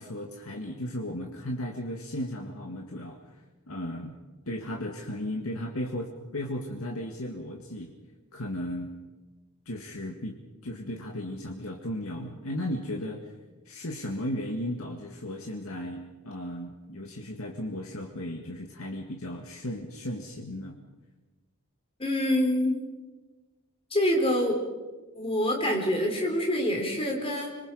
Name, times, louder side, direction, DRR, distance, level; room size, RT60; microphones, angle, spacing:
voice 1, 0.0-4.1 4.5-7.9 8.3-8.9 9.7-13.3 13.7-20.8, left 1 dB, 90° left, 2 dB, 1.9 m, -35 dB
voice 2, 22.0-22.7 23.9-24.6 25.1-27.5, left 1 dB, 25° left, 1 dB, 4.6 m, -26 dB
26.0 x 23.5 x 5.1 m, 1.2 s
head